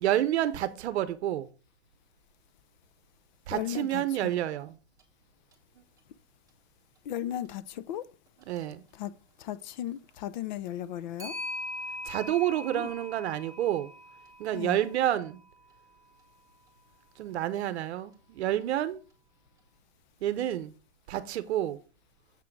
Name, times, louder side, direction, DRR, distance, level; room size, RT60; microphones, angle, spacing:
voice 1, 0.0-1.5 3.5-4.8 5.8-5.9 8.5-8.8 12.0-13.9 14.4-15.4 17.2-19.0 20.2-20.7 21.1-21.8, right 12 dB, 65° right, 0.8 m, -29 dB
voice 2, 3.5-4.0 7.1-8.0 8.9-9.1 9.4-11.3 12.7-12.9 14.5-14.8, left 11 dB, 40° left, 0.4 m, -35 dB
Clock, 5.0-5.1 5.5-5.6 8.4-8.6 11.2-15.4, left 2 dB, 10° right, 1.7 m, -41 dB
7.4 x 3.7 x 5.9 m
supercardioid pair, 150°, 35 cm